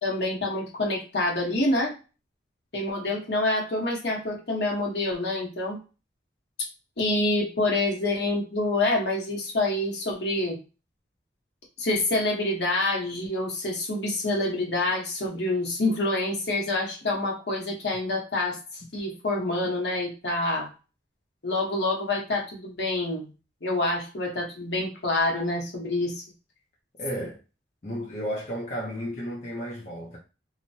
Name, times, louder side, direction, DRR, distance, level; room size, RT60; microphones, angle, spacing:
voice 1, 0.0-1.9 2.7-5.8 7.0-10.6 11.8-18.6 18.9-20.7 21.4-23.3 23.6-26.2, left 2 dB, 70° left, 1.1 m, -27 dB
voice 2, 27.0-27.4 27.8-30.2, equal, 40° left, 0.6 m, -33 dB
3.0 x 2.1 x 2.7 m
head